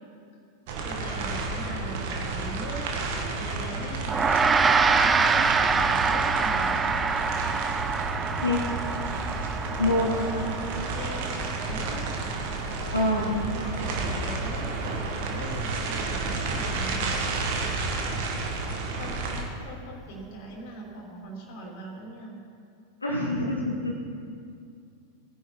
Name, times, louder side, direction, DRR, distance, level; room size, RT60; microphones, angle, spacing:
sound 1, 0.7-19.4, right 3 dB, 50° right, 1.9 m, -31 dB
voice 1, 0.8-2.8 3.3-4.1 4.9-6.8 10.1-12.1 13.1-17.2 18.8-22.4, right 1 dB, 50° left, -1 dB, 3.3 m, -41 dB
Gong, 4.1-13.6, right 4 dB, 15° right, 0.6 m, -26 dB
voice 2, 9.8-10.1 12.9-13.3 23.0-24.0, left 1 dB, 80° left, -4 dB, 1.9 m, -25 dB
17.0 x 10.0 x 4.6 m, 2.4 s
figure-of-eight pair, 90°, 0 cm